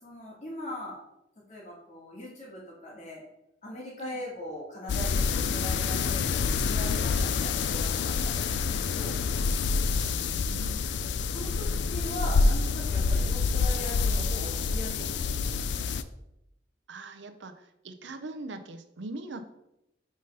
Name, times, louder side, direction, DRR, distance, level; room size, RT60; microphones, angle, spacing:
voice 1, 0.0-1.0 1.5-3.2 3.6-9.1 11.3-15.6, left 1 dB, 40° left, -3 dB, 1.9 m, -40 dB
sound 1, 4.9-16.0, left 4 dB, 65° left, 0.4 m, -27 dB
voice 2, 9.8-10.8 16.9-19.5, right 2 dB, 75° right, 7 dB, 0.6 m, -42 dB
5.0 x 4.0 x 5.4 m, 0.84 s
head